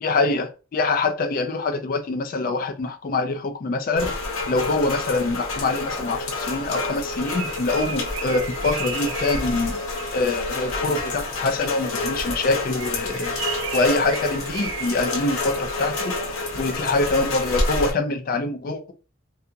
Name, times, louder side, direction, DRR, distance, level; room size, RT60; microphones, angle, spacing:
voice 1, 0.0-4.1 4.5-9.8 10.1-16.1 16.5-18.9, left 3 dB, 45° left, 0.3 m, -25 dB
Rain, 4.0-17.9, left 2 dB, 90° left, 0.8 m, -28 dB
Bird, 6.9-11.0 12.6-16.1, right 6 dB, 70° right, 0.5 m, -36 dB
2.7 x 2.3 x 2.5 m
head